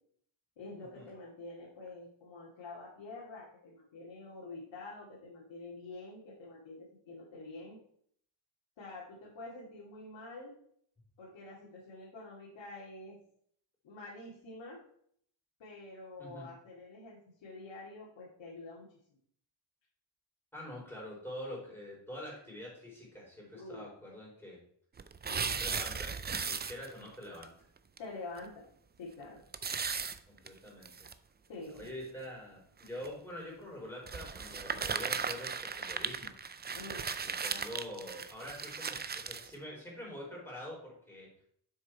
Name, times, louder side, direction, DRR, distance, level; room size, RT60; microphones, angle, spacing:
voice 1, 0.6-7.8 8.8-10.6 11.2-13.2 13.8-14.8 15.6-18.9 23.5-23.9 25.2-25.6 28.0-28.6 29.0-29.4 31.5-31.9 36.8-37.1, left 2 dB, 85° left, -5 dB, 2.4 m, -47 dB
voice 2, 20.5-24.6 25.4-27.5 30.3-30.9 31.7-36.3 37.2-41.3, left 1 dB, 5° left, -4 dB, 4.0 m, -45 dB
sound 1, 25.0-27.1 27.4-27.5 28.0-28.1 28.4-28.5 29.5-31.1 31.8-31.9 32.8-33.1 34.1-39.5, right 5 dB, 25° right, 0.4 m, -37 dB
7.7 x 6.4 x 4.5 m, 0.64 s
wide cardioid pair, 140°, 45 cm